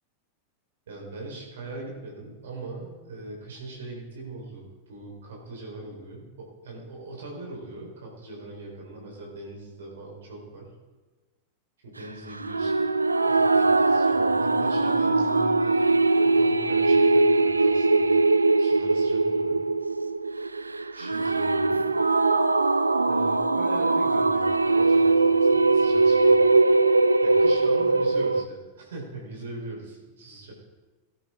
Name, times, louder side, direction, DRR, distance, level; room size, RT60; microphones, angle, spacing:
voice 1, 0.9-10.7 11.8-15.9 16.2-18.1 18.6-19.6 20.9-21.9 23.1-26.5 27.2-30.5, right 2 dB, 65° right, -2 dB, 4.3 m, -40 dB
sound 1, 12.4-28.4, right 3 dB, 80° right, 0.4 m, -21 dB
18.5 x 12.0 x 3.8 m, 1.2 s
figure-of-eight pair, 90°, 0 cm